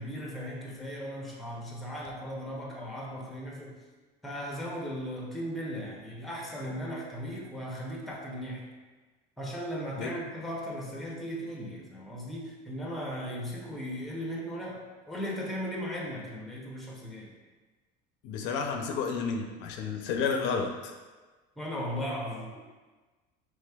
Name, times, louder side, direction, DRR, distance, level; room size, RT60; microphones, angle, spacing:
voice 1, 0.0-3.7 4.2-8.7 9.4-17.3 21.6-22.5, equal, ahead, -2 dB, 0.6 m, -37 dB
voice 2, 18.2-20.9, left 5 dB, 65° left, 3 dB, 0.5 m, -31 dB
5.1 x 3.3 x 2.2 m, 1.3 s
cardioid pair, 150°, 20 cm